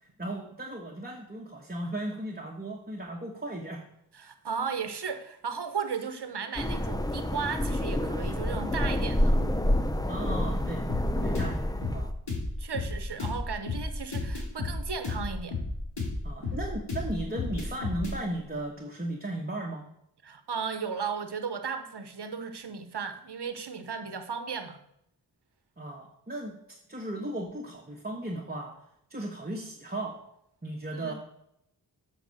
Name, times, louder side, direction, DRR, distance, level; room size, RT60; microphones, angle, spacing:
voice 1, 0.0-3.8 10.1-10.9 11.2-12.1 16.2-19.8 25.8-26.6 26.9-28.7 29.1-30.2 30.6-31.1, right 1 dB, 25° right, 0 dB, 1.3 m, -36 dB
voice 2, 4.1-9.4 12.6-15.6 20.2-24.8 30.9-31.1, right 6 dB, 70° right, 9 dB, 1.1 m, -35 dB
sound 1, 6.6-12.1, left 1 dB, 10° left, 0.6 m, -28 dB
sound 2, 10.9-18.2, left 3 dB, 75° left, 2.6 m, -33 dB
8.1 x 5.8 x 6.5 m, 0.76 s
wide cardioid pair, 65°, 41 cm